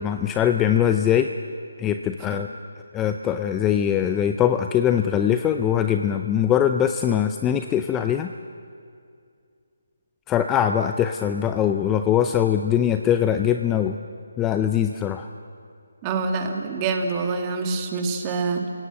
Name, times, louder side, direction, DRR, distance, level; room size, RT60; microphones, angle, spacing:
voice 1, 0.0-1.3 1.8-2.5 2.9-8.3 10.3-14.0 14.4-15.3, left 9 dB, 10° left, 7 dB, 0.6 m, -22 dB
voice 2, 16.0-18.6, right 4 dB, 20° right, 4 dB, 2.3 m, -26 dB
29.5 x 18.0 x 7.7 m, 2.3 s
figure-of-eight pair, 160°, 0 cm